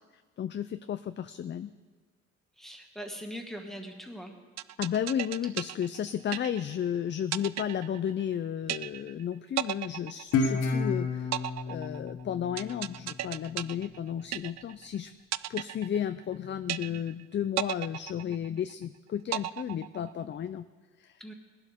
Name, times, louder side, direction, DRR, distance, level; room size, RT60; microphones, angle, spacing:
voice 1, 0.4-1.7 4.8-11.3 11.7-15.1 15.5-20.7 21.0-21.2, left 9 dB, 40° left, 11 dB, 0.4 m, -33 dB
voice 2, 2.6-4.4 21.2-21.3, equal, ahead, 2 dB, 1.9 m, -41 dB
sound 1, 4.6-6.9 7.3-8.3 8.7-9.2 9.6-10.8 11.3-14.9 15.3-16.3 16.7-17.2 17.6-18.8 19.3-20.3, right 14 dB, 60° right, 0.4 m, -35 dB
Guitar, 10.3-13.5, left 4 dB, 75° left, 1.5 m, -31 dB
19.5 x 11.5 x 3.6 m, 1.5 s
cardioid pair, 90°, 30 cm